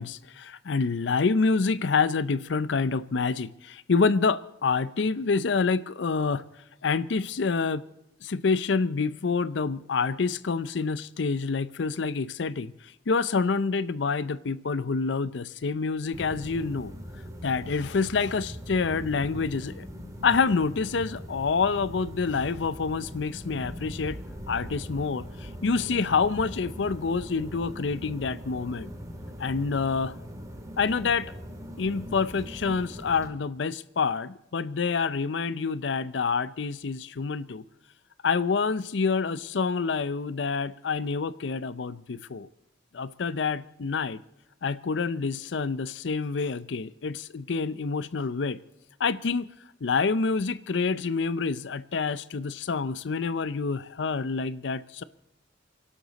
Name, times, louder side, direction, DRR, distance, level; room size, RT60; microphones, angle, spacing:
voice 1, 0.0-6.5 6.8-7.9 8.2-16.9 17.4-19.9 20.2-24.2 24.5-28.9 29.4-30.1 30.8-31.3 31.8-37.6 38.2-42.5 42.9-44.2 44.6-48.6 49.0-49.5 49.8-55.0, left 4 dB, 65° left, 0.5 m, -27 dB
sound 1, 16.1-33.3, equal, 20° right, 1.9 m, -41 dB
28.0 x 12.0 x 4.0 m
head